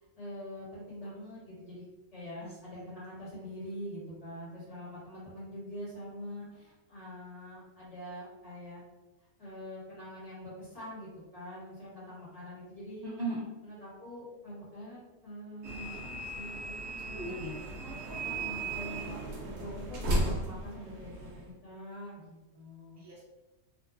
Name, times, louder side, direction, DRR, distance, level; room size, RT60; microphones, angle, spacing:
voice 1, 0.2-1.8 2.1-8.8 9.4-13.1 13.6-17.4 18.2-19.2 19.5-23.0, equal, 25° left, -9 dB, 1.3 m, -44 dB
voice 2, 2.4-2.8 13.0-13.5 17.1-17.6 23.0-23.3, right 2 dB, 35° right, -7 dB, 0.4 m, -38 dB
sound 1, 15.6-21.5, right 1 dB, 70° right, 0.9 m, -36 dB
2.9 x 2.3 x 2.4 m, 1.1 s
omnidirectional pair, 1.5 m